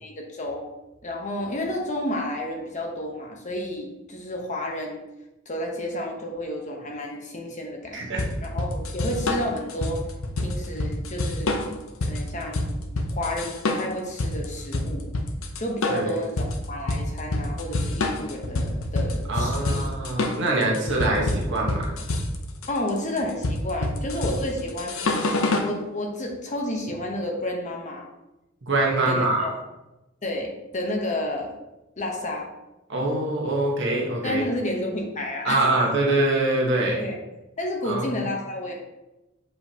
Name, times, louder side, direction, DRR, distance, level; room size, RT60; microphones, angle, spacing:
voice 1, 0.0-0.7 1.0-5.0 5.5-10.0 10.4-11.6 12.0-12.7 13.1-15.1 15.6-19.9 20.9-21.0 22.7-25.0 25.6-28.1 29.1-29.6 30.2-31.5 32.0-32.5 34.2-35.7 37.0-37.2 37.6-38.8, left 1 dB, 35° left, 1 dB, 0.9 m, -31 dB
voice 2, 7.9-8.3 15.9-16.1 19.3-22.0 28.6-29.5 32.9-34.5 35.4-37.1 37.8-38.2, right 2 dB, 60° right, -2 dB, 1.2 m, -24 dB
sound 1, 8.2-25.7, left 2 dB, 80° left, 0.7 m, -27 dB
7.5 x 4.7 x 2.9 m, 1.0 s
head